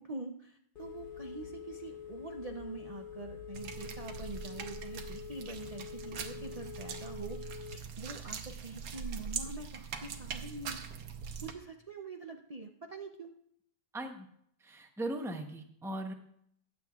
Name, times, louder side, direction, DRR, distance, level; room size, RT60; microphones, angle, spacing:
voice 1, 0.0-7.4 7.7-10.8 11.4-13.3, right 3 dB, 65° right, 2 dB, 0.3 m, -45 dB
Telephone, 0.8-7.8, left 8 dB, 45° left, 0.7 m, -46 dB
sound 1, 3.5-11.5, right 6 dB, 85° right, 1.5 m, -42 dB
voice 2, 13.9-14.3 14.6-16.1, right 1 dB, 5° right, 4 dB, 0.5 m, -38 dB
21.5 x 7.8 x 2.4 m, 0.69 s
omnidirectional pair, 1.7 m